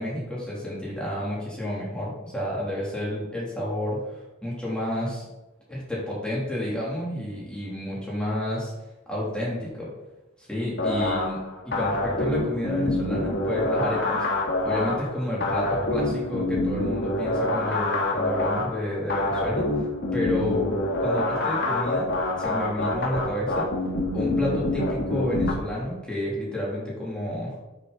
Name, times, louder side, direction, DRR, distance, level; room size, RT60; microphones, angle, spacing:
voice 1, 0.0-5.3 5.7-8.7 9.1-9.9 10.4-14.2 14.6-19.7 20.1-20.7 21.0-22.1 22.4-23.7 24.1-27.5, left 1 dB, 5° left, -6 dB, 3.2 m, -30 dB
sound 1, 10.8-25.5, left 1 dB, 50° left, 1.8 m, -26 dB
9.9 x 6.9 x 4.1 m, 1.0 s
head